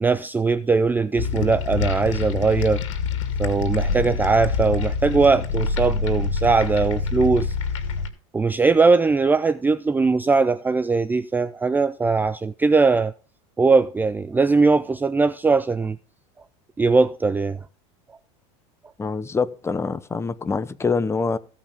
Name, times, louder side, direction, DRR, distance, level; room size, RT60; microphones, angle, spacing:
voice 1, 0.0-2.8 3.4-7.5 8.3-13.1 13.6-16.0 16.8-17.7, right 4 dB, 10° right, 0.5 m, -20 dB
sound 1, 1.2-8.1, left 5 dB, 90° left, 2.2 m, -26 dB
voice 2, 19.0-21.4, left 4 dB, 15° left, 1.0 m, -25 dB
16.0 x 5.7 x 5.4 m
supercardioid pair, 110°, 16 cm